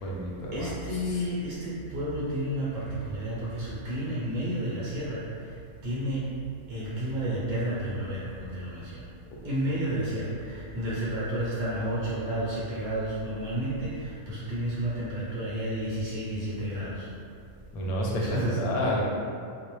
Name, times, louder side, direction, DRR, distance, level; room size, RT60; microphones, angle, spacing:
voice 1, 0.0-1.2 17.7-19.0, equal, 85° left, -3 dB, 1.1 m, -30 dB
voice 2, 0.5-5.2 5.8-6.2 6.7-8.8 9.4-17.1 18.2-18.6, right 1 dB, 55° right, -9 dB, 0.6 m, -31 dB
2.5 x 2.1 x 3.0 m, 2.4 s
omnidirectional pair, 1.5 m